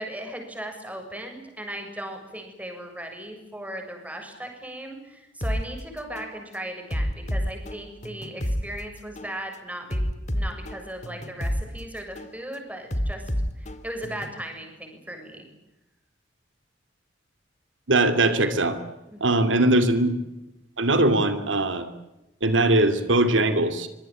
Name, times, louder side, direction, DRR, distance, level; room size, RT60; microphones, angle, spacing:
voice 1, 0.0-10.0 10.3-13.2 13.6-15.4 19.1-19.4, right 1 dB, 10° right, 3 dB, 7.2 m, -37 dB
sound 1, 5.4-5.6 6.2-6.4 6.9-8.6 9.2-9.4 9.9-11.6 12.2-12.4 12.9-14.4, equal, 40° left, 2.4 m, -28 dB
voice 2, 17.9-18.8 19.2-20.1 20.8-21.9 22.4-23.9, right 2 dB, 85° right, 10 dB, 2.7 m, -21 dB
25.0 x 23.5 x 9.1 m, 0.93 s
head